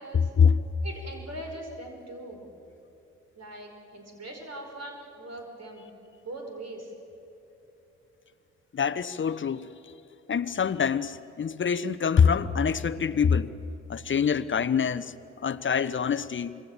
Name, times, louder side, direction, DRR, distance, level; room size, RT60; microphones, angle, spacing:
voice 1, 0.1-0.6 8.7-9.8 10.3-13.5 13.9-16.6, left 6 dB, 35° left, 0.9 m, -25 dB
voice 2, 0.8-2.4 3.4-5.9 6.2-6.9, right 1 dB, 45° right, 5.1 m, -41 dB
26.0 x 22.0 x 7.2 m
hypercardioid pair, 40°, 34 cm